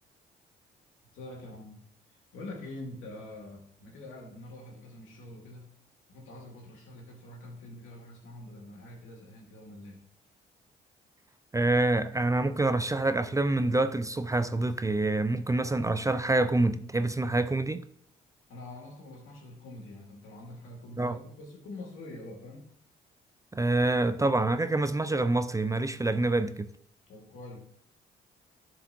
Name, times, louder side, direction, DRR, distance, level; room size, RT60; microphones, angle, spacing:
voice 1, 1.1-1.8 2.1-5.7 6.1-10.0 18.5-22.6 27.1-27.6, left 1 dB, 75° left, 2.2 m, -45 dB
voice 2, 11.5-17.8 21.0-21.2 23.5-26.7, right 2 dB, 15° right, 0.4 m, -26 dB
11.5 x 4.7 x 2.7 m
hypercardioid pair, 50°, 21 cm